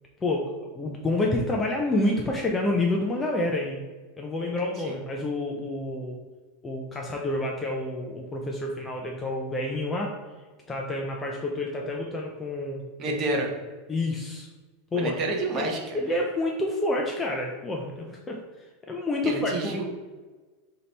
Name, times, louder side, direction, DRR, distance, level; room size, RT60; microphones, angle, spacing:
voice 1, 0.7-3.8 4.2-6.2 6.6-10.1 10.7-13.2 13.9-14.5 14.9-15.1 15.5-18.4 18.9-19.8, left 2 dB, 15° left, -1 dB, 0.3 m, -28 dB
voice 2, 13.0-13.5 14.9-16.0 19.2-19.8, right 2 dB, 30° right, 1 dB, 0.7 m, -29 dB
3.2 x 2.7 x 4.0 m, 1.3 s
supercardioid pair, 160°, 0 cm